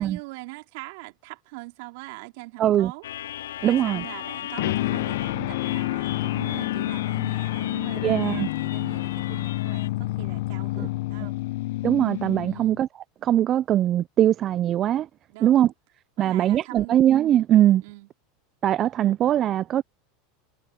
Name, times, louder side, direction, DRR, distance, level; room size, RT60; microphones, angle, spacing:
voice 1, 0.0-3.1 3.6-11.4 12.5-12.8 15.3-15.7 16.2-17.0 17.8-18.1, right 25 dB, 65° right, 4.1 m, -42 dB
voice 2, 2.6-2.9 3.6-4.0 8.0-8.5 10.8-10.9 11.8-12.9 13.2-15.1 15.4-15.7 16.2-17.8 18.6-19.8, right 11 dB, 40° right, 0.5 m, -21 dB
sound 1, 3.0-9.9, left 12 dB, 85° left, 3.3 m, -37 dB
sound 2, 4.6-12.8, left 18 dB, 70° left, 0.8 m, -28 dB
hypercardioid pair, 100°, 0 cm